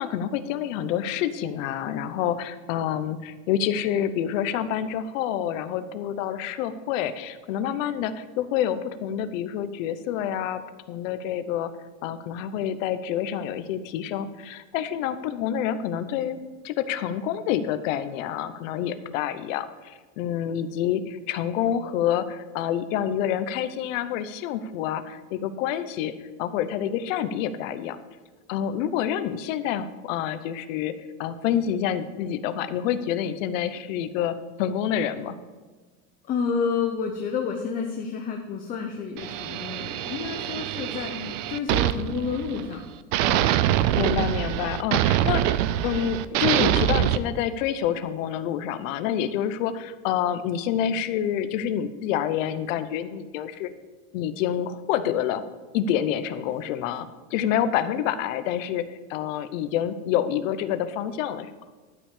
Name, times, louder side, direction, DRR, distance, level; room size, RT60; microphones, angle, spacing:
voice 1, 0.0-10.6 10.9-11.7 12.0-16.4 16.6-26.1 26.4-28.0 28.5-30.9 31.2-35.4 41.2-41.4 44.0-53.7 54.1-55.4 55.7-58.8 59.1-61.5, left 10 dB, 60° left, 11 dB, 0.9 m, -27 dB
voice 2, 36.2-42.8 43.2-43.7, left 5 dB, 20° left, 3 dB, 0.6 m, -30 dB
sound 1, 39.2-42.8 43.1-47.2, right 13 dB, 55° right, 0.6 m, -24 dB
12.0 x 5.5 x 6.6 m, 1.4 s
supercardioid pair, 165°, 44 cm